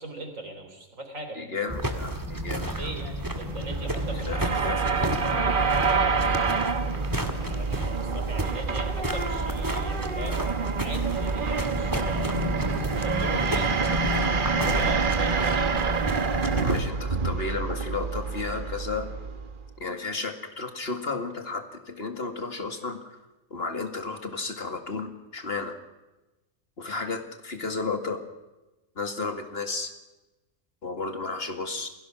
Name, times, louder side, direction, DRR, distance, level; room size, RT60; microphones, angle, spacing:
voice 1, 0.0-1.5 2.5-4.5 7.4-10.4 10.8-12.4 12.9-13.8 14.5-15.7, right 2 dB, 75° right, 5 dB, 4.0 m, -39 dB
voice 2, 1.3-2.9 4.3-5.7 6.0-6.5 16.5-19.1 19.8-23.2 23.5-25.8 26.8-28.2 29.0-29.9 30.8-31.9, left 4 dB, 50° left, 6 dB, 2.3 m, -33 dB
sound 1, 1.7-16.9, equal, 15° right, 2.0 m, -31 dB
sound 2, 3.3-19.7, right 5 dB, 40° right, 1.3 m, -27 dB
28.0 x 17.5 x 6.2 m, 1.1 s
omnidirectional pair, 1.4 m